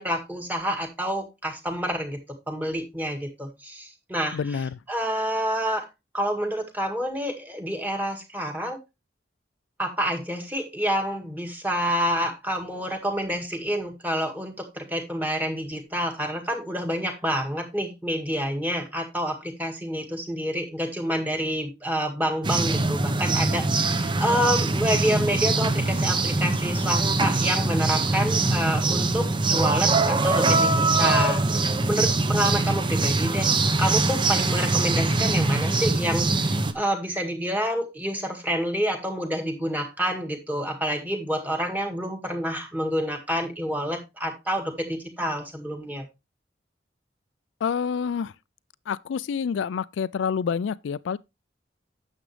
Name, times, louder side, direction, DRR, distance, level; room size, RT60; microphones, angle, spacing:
voice 1, 0.0-2.2 2.5-4.4 4.9-5.9 6.1-8.8 9.8-31.5 31.9-33.5 33.8-46.1, equal, 10° right, 1.8 m, -28 dB
voice 2, 4.3-4.8 47.6-48.3 48.9-51.2, left 6 dB, 90° left, 0.4 m, -28 dB
sound 1, 22.4-36.7, right 3 dB, 25° right, 0.8 m, -23 dB
9.9 x 7.3 x 3.3 m
head